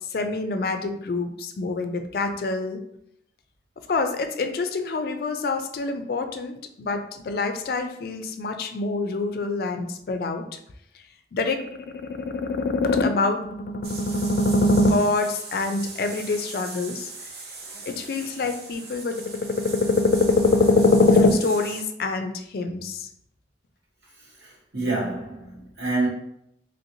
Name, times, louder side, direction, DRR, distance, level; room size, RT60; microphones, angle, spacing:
voice 1, 0.1-2.8 3.9-10.4 11.3-11.6 12.6-13.4 14.6-17.1 17.9-19.2 20.4-23.1, left 3 dB, 55° left, 0.3 m, -24 dB
sound 1, 13.8-21.9, right 3 dB, 60° right, 0.6 m, -40 dB
voice 2, 24.4-26.1, right 2 dB, 85° right, 1.4 m, -28 dB
3.1 x 2.8 x 2.6 m
head